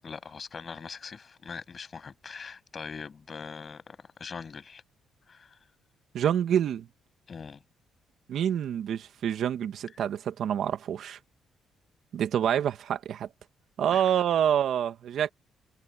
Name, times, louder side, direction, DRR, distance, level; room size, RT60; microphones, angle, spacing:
voice 1, 0.0-4.8 5.3-5.7 7.3-7.6 13.9-14.3, left 5 dB, 35° left, 8.0 m, -42 dB
voice 2, 6.1-6.9 8.3-11.2 12.1-13.3 13.8-15.3, right 9 dB, 65° right, 2.0 m, -27 dB
cardioid pair, 115°, 0 cm